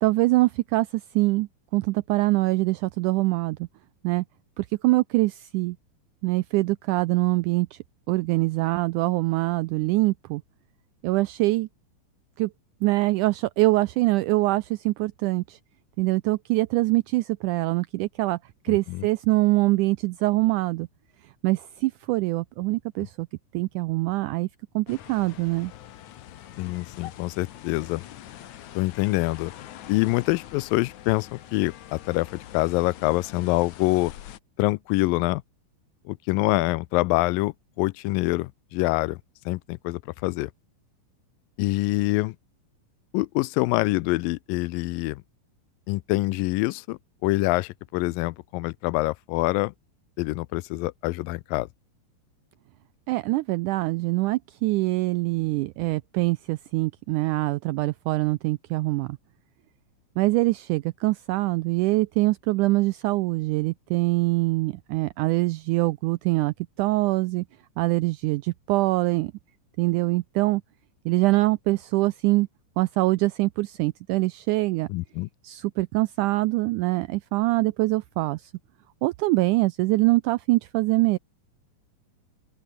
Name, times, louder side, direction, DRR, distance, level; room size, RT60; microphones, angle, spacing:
voice 1, 0.0-3.7 4.0-4.2 4.6-5.8 6.2-7.8 8.1-10.4 11.0-11.7 12.4-12.5 12.8-15.6 16.0-18.4 18.6-20.9 21.4-23.3 23.5-24.5 24.7-25.7 53.1-59.2 60.2-67.4 67.8-69.3 69.8-70.6 71.0-72.5 72.8-74.9 75.4-78.5 79.0-81.2, right 20 dB, 85° right, 1.8 m, -24 dB
voice 2, 18.7-19.1 26.6-28.0 28.8-29.5 29.9-34.1 34.6-35.4 36.1-39.2 39.5-40.5 41.6-42.4 43.1-45.2 45.9-49.7 50.2-51.7 74.9-75.3, left 21 dB, 85° left, 2.2 m, -25 dB
sound 1, 24.9-34.4, left 12 dB, 65° left, 2.4 m, -44 dB
open air
omnidirectional pair, 4.1 m